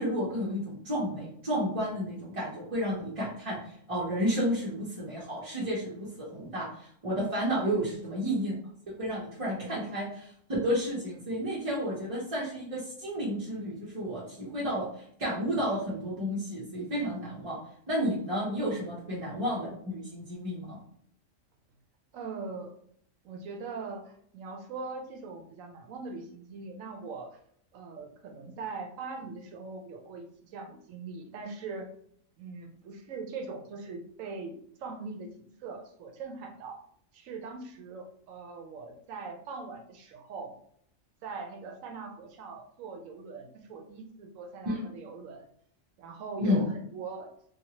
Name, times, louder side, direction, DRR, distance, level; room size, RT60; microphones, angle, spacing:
voice 1, 0.0-3.6 3.9-8.5 9.0-10.3 10.6-17.6 17.9-20.8 44.7-44.9 46.4-46.6, equal, 35° right, -6 dB, 0.6 m, -31 dB
voice 2, 7.6-8.0 9.6-10.0 18.8-18.9 22.1-22.7 23.2-27.4 27.7-31.9 32.4-36.8 37.1-40.5 41.2-45.5 46.0-47.3, right 4 dB, 80° right, 3 dB, 1.0 m, -41 dB
2.8 x 2.3 x 2.8 m, 0.65 s
omnidirectional pair, 1.4 m